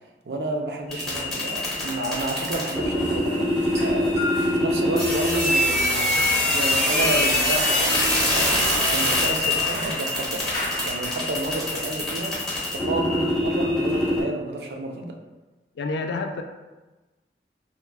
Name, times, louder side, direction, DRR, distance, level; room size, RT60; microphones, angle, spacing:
voice 1, 0.3-6.2 6.5-8.6 8.9-10.5 10.8-15.2, right 2 dB, 65° right, 2 dB, 0.4 m, -31 dB
sound 1, 0.9-14.2, left 1 dB, ahead, 1.0 m, -23 dB
sound 2, 2.8-11.3, left 1 dB, 50° left, 1.0 m, -39 dB
sound 3, 3.5-4.7 5.6-5.8 6.8-6.9, left 3 dB, 40° right, 1.1 m, -32 dB
voice 2, 15.8-16.4, left 3 dB, 75° left, 6 dB, 0.3 m, -29 dB
3.6 x 2.2 x 2.3 m, 1.2 s
head